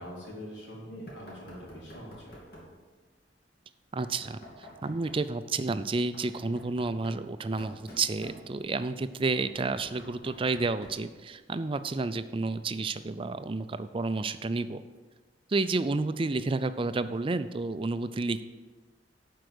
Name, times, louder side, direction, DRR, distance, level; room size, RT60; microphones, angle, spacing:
voice 1, 0.0-2.4, equal, 75° left, -4 dB, 3.6 m, -43 dB
Knock, 1.1-2.8 4.0-5.3 5.9-8.8 9.3-11.1, equal, 55° left, 2.8 m, -50 dB
voice 2, 3.9-4.4 4.8-14.8 15.5-18.4, right 3 dB, 30° right, 12 dB, 0.4 m, -30 dB
11.5 x 4.7 x 7.9 m, 1.4 s
head